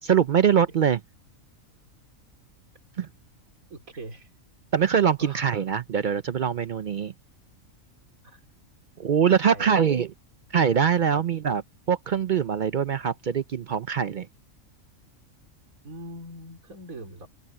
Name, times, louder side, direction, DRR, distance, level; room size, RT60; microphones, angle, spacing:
voice 1, 0.0-1.0 3.0-3.1 4.7-7.1 9.0-10.1 10.5-11.6 11.9-14.3, right 7 dB, 60° right, 0.5 m, -23 dB
voice 2, 3.7-4.3 5.2-5.4 8.2-8.4 9.3-9.8 11.0-11.2 15.8-17.3, right 1 dB, 85° right, 4.0 m, -41 dB
open air
omnidirectional pair, 1.4 m